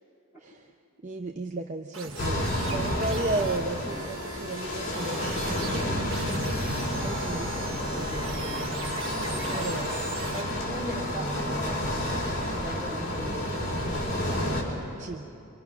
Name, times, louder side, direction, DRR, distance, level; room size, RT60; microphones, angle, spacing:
voice 1, 1.0-6.1 6.8-8.7 9.5-10.0 11.2-11.3 14.5-14.6 15.0-15.2, right 2 dB, 35° right, 4 dB, 0.7 m, -35 dB
sound 1, 1.9-10.4, right 4 dB, 65° right, 1.4 m, -40 dB
sound 2, 2.2-14.6, left 1 dB, 40° left, 3.9 m, -30 dB
voice 2, 9.2-9.7 10.3-13.5, right 1 dB, 10° right, -7 dB, 5.5 m, -39 dB
26.5 x 24.0 x 5.8 m, 2.6 s
head